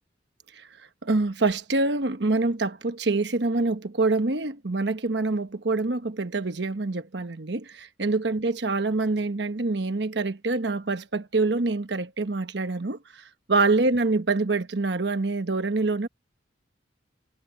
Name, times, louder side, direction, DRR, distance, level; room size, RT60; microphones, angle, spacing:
voice 1, 1.0-16.1, right 3 dB, 70° right, 1.1 m, -26 dB
head